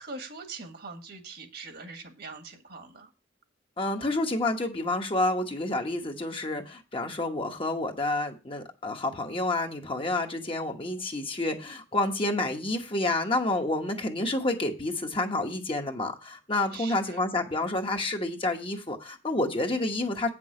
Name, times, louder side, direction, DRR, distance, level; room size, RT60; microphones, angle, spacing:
voice 1, 0.0-3.1 16.7-17.2, right 3 dB, 60° right, 6 dB, 1.7 m, -42 dB
voice 2, 3.8-20.3, left 2 dB, 30° left, 3 dB, 1.2 m, -29 dB
9.0 x 6.1 x 4.9 m, 0.30 s
head